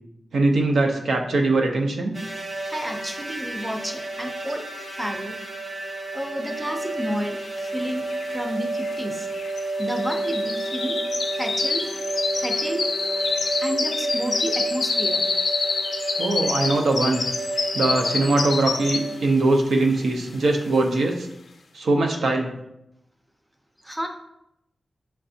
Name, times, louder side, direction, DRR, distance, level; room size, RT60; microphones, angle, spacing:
voice 1, 0.3-2.2 16.2-17.2 17.7-21.3 21.7-22.5, right 2 dB, 85° right, 2 dB, 0.6 m, -21 dB
sound 1, 2.1-19.2, right 2 dB, 30° right, 0.9 m, -31 dB
voice 2, 2.6-4.6 4.9-5.4 6.1-8.1 8.3-9.3 9.8-11.0 11.3-11.9 12.4-12.9 13.6-15.3 23.8-24.1, equal, 10° right, 4 dB, 0.5 m, -31 dB
sound 2, 7.6-7.7 7.9-19.3 19.7-20.0 20.5-20.6, left 4 dB, 65° left, 0.5 m, -27 dB
5.8 x 3.3 x 2.7 m, 0.82 s
wide cardioid pair, 155°, 0 cm